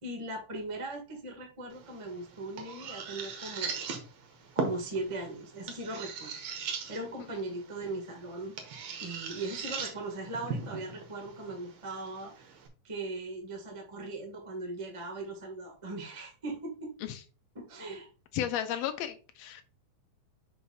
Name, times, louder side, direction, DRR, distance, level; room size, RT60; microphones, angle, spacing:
voice 1, 0.0-3.9 4.5-8.5 9.0-12.6 12.8-16.9 17.5-18.1, right 2 dB, 20° right, 1 dB, 0.9 m, -39 dB
sound 1, 1.7-12.7, right 5 dB, 60° right, 1.9 m, -40 dB
voice 2, 18.3-19.6, left 10 dB, 75° left, 8 dB, 1.5 m, -33 dB
6.1 x 2.9 x 5.5 m, 0.34 s
omnidirectional pair, 3.6 m